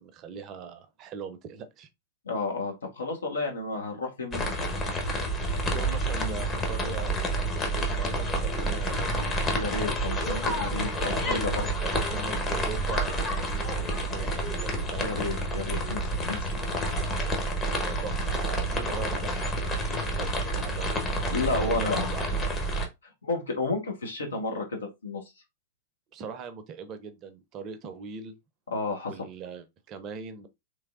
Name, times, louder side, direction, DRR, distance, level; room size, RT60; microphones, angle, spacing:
voice 1, 0.0-1.9 5.7-7.3 7.6-9.5 10.9-11.5 11.8-15.1 17.7-21.2 21.5-22.3 26.1-28.3 29.1-30.5, right 6 dB, 35° right, 0.6 m, -40 dB
voice 2, 2.2-4.5 9.5-11.7 15.0-16.0 16.3-16.6 21.3-22.1 23.2-25.2 28.7-29.1, left 3 dB, 70° left, 1.2 m, -31 dB
sound 1, 4.3-22.9, right 1 dB, 20° left, 1.0 m, -29 dB
3.4 x 3.3 x 2.4 m
figure-of-eight pair, 95°, 0 cm